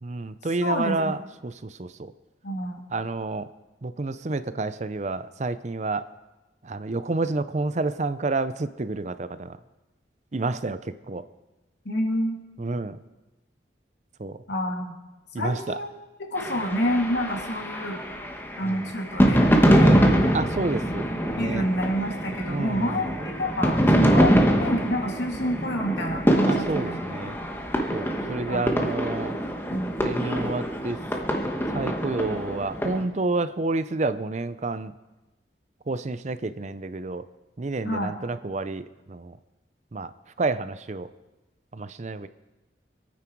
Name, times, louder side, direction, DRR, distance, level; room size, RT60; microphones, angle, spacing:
voice 1, 0.0-1.2 1.4-2.1 2.9-3.5 3.8-6.0 6.6-9.6 10.3-11.2 12.6-13.0 14.2-14.4 15.3-15.6 18.6-18.8 19.8-20.0 20.3-21.1 21.4-21.6 22.5-23.1 26.4-27.3 27.9-29.3 30.0-31.0 31.7-34.9 35.9-37.2 37.6-39.4 39.9-40.1 40.4-41.1 41.7-42.3, right 3 dB, 40° right, 13 dB, 0.6 m, -29 dB
voice 2, 0.6-1.1 2.4-2.8 11.8-12.4 14.5-14.9 15.4-15.9 16.2-18.0 18.6-19.4 19.7-20.3 21.4-27.0 28.5-28.7 29.7-30.0 37.8-38.1, equal, 75° left, 1 dB, 2.6 m, -28 dB
sound 1, 16.4-33.0, equal, 10° left, 1.3 m, -24 dB
25.5 x 9.5 x 4.6 m, 1.1 s
head